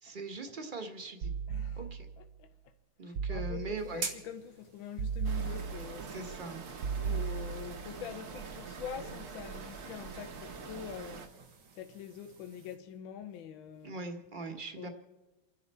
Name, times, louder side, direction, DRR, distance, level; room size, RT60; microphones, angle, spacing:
voice 1, 0.0-1.3 1.8-2.1 3.0-4.0 6.1-6.6 13.8-14.9, right 3 dB, 30° right, 1.3 m, -41 dB
sound 1, 1.2-2.2 3.2-4.1 5.0-6.1 6.8-7.9, right 6 dB, 70° right, 1.2 m, -36 dB
voice 2, 1.5-1.8 2.2-2.7 3.0-6.2 7.0-11.3 11.7-13.9 14.8-14.9, left 8 dB, 75° left, 1.4 m, -45 dB
sound 2, 3.8-12.8, right 5 dB, 85° right, 2.4 m, -48 dB
sound 3, 5.2-11.3, right 5 dB, 55° right, 1.7 m, -45 dB
29.0 x 11.0 x 4.2 m
omnidirectional pair, 2.2 m